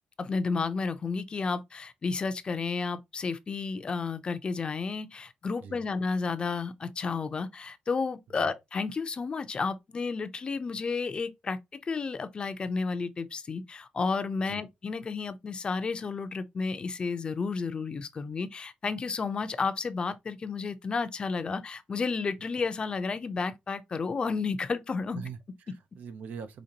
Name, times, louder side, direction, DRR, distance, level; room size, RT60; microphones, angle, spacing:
voice 1, 0.2-25.2, left 4 dB, 35° left, 0.6 m, -32 dB
voice 2, 25.1-26.6, right 6 dB, 75° right, 0.7 m, -42 dB
5.1 x 3.6 x 2.8 m
wide cardioid pair, 145°, 3 cm